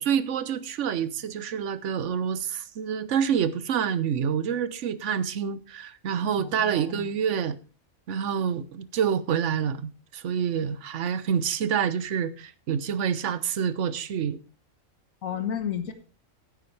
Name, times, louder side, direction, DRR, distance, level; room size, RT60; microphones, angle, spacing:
voice 1, 0.0-7.6 8.1-14.4, right 8 dB, 65° right, 1.0 m, -27 dB
voice 2, 6.4-7.1 15.2-15.9, left 8 dB, 75° left, 1.6 m, -32 dB
15.5 x 8.8 x 3.2 m
omnidirectional pair, 1.4 m